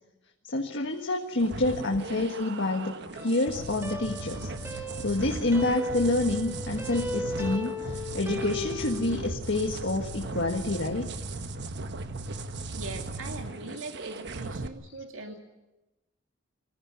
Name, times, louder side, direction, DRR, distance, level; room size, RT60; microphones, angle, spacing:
voice 1, 0.4-2.9 3.2-4.5 5.0-11.1, left 2 dB, 65° left, 2 dB, 1.7 m, -28 dB
sound 1, 1.4-14.7, right 2 dB, 60° right, 1.2 m, -37 dB
sound 2, 3.2-9.4, left 1 dB, 15° right, 2.1 m, -36 dB
voice 2, 12.7-15.4, right 3 dB, 90° right, 4 dB, 2.4 m, -41 dB
24.5 x 15.5 x 9.9 m, 1.0 s
head